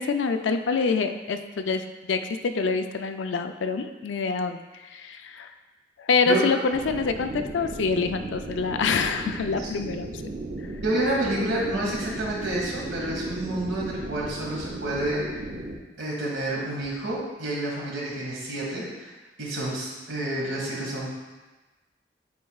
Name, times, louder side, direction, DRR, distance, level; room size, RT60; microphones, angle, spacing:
voice 1, 0.0-4.6 4.8-5.5 6.0-10.3, left 4 dB, 85° left, 7 dB, 0.4 m, -26 dB
voice 2, 6.3-6.6 10.8-15.4 16.0-19.1 19.4-21.1, right 1 dB, 80° right, -4 dB, 1.8 m, -29 dB
sound 1, 6.7-15.8, right 2 dB, 50° right, 0.6 m, -36 dB
9.4 x 4.6 x 2.3 m, 1.2 s
head